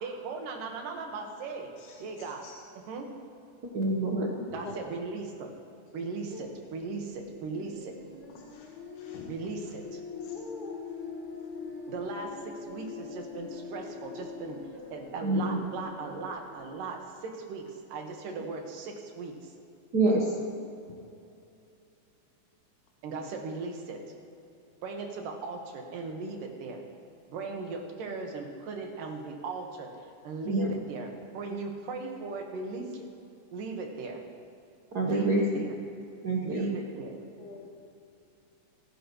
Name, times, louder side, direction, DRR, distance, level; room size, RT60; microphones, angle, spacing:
voice 1, 0.0-1.7 2.0-2.4 2.9-3.1 4.5-5.5 5.9-8.0 9.3-10.0 11.9-14.6 14.9-19.5 23.0-24.0 24.8-26.8 27.3-29.9 30.2-33.1 33.5-34.2 35.0-35.7 36.4-37.2, right 4 dB, 85° right, 2 dB, 3.1 m, -38 dB
voice 2, 3.7-4.4 15.2-15.6 19.9-20.3 30.4-30.7 34.9-35.7 36.2-36.8, right 2 dB, 70° right, -2 dB, 0.9 m, -26 dB
voice 3, 5.9-6.4 8.3-8.7 9.0-9.3 10.2-10.3 37.4-37.7, left 4 dB, 75° left, -2 dB, 2.6 m, -47 dB
sound 1, 7.4-16.7, left 5 dB, 30° left, 0.9 m, -42 dB
26.5 x 11.0 x 3.1 m, 2.7 s
omnidirectional pair, 3.7 m